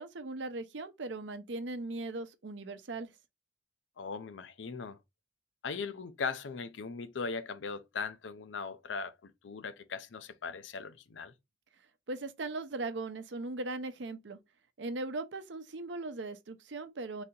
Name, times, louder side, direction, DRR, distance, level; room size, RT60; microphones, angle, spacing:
voice 1, 0.0-3.1 12.1-14.4 14.8-17.2, right 2 dB, 70° right, 0.7 m, -39 dB
voice 2, 4.0-5.0 5.6-11.3, left 5 dB, 80° left, 0.6 m, -39 dB
4.0 x 2.8 x 3.8 m
head